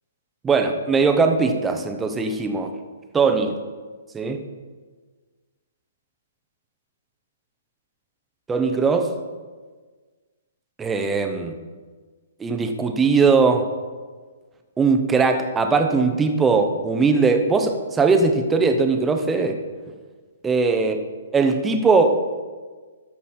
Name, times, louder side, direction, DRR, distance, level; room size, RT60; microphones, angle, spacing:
voice 1, 0.4-2.7 3.1-3.5 4.1-4.4 8.5-9.1 10.8-11.6 12.4-13.7 14.8-19.6 20.4-21.0 21.3-22.2, right 4 dB, 10° right, 6 dB, 0.7 m, -20 dB
13.5 x 5.4 x 4.4 m, 1.4 s
hypercardioid pair, 150°, 0 cm